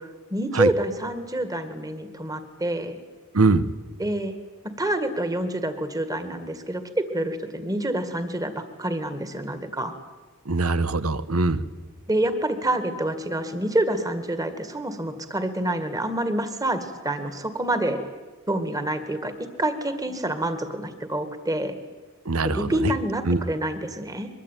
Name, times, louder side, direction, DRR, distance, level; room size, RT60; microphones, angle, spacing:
voice 1, 0.0-3.0 4.0-4.3 4.8-9.9 12.1-18.0 18.5-19.3 19.6-21.7 22.4-24.3, right 1 dB, 15° right, 9 dB, 2.0 m, -27 dB
voice 2, 3.3-3.7 10.4-11.6 22.2-22.9 23.3-23.4, right 3 dB, 85° right, 14 dB, 1.2 m, -22 dB
23.5 x 23.0 x 9.2 m, 1.2 s
head